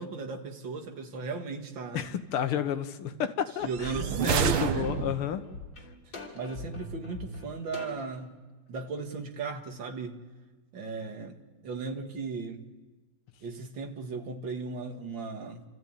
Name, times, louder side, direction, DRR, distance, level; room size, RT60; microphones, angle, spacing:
voice 1, 0.0-2.1 3.0-3.2 3.6-4.9 6.3-8.3 8.7-10.2 10.7-11.4 11.6-12.6 13.4-15.6, right 4 dB, 65° right, 4 dB, 2.4 m, -36 dB
voice 2, 1.9-3.9 4.2-5.4, left 9 dB, 90° left, 9 dB, 2.0 m, -31 dB
sound 1, 3.6-5.4, right 9 dB, 90° right, 1.9 m, -29 dB
sound 2, 3.9-4.1 4.5-8.1, left 4 dB, 60° left, 3.7 m, -42 dB
29.5 x 14.0 x 8.9 m, 1.3 s
omnidirectional pair, 2.3 m